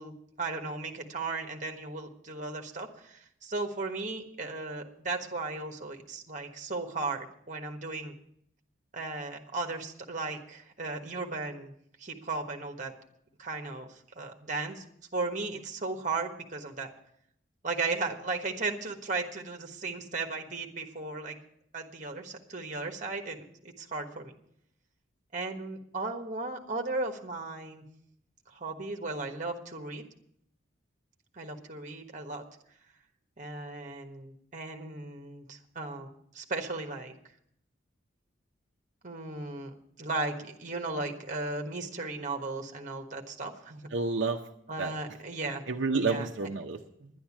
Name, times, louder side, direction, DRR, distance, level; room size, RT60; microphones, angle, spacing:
voice 1, 0.0-8.1 8.9-11.7 12.0-12.9 13.4-14.8 15.1-16.9 17.6-21.4 21.7-24.4 25.3-27.8 28.5-30.0 31.3-32.4 33.4-37.1 39.0-43.9 44.7-45.6 46.0-46.3, right 3 dB, 40° right, 4 dB, 1.3 m, -36 dB
voice 2, 43.9-44.4 44.8-44.9 45.7-47.1, right 4 dB, 65° right, 3 dB, 0.7 m, -30 dB
10.5 x 10.5 x 7.2 m, 0.69 s
head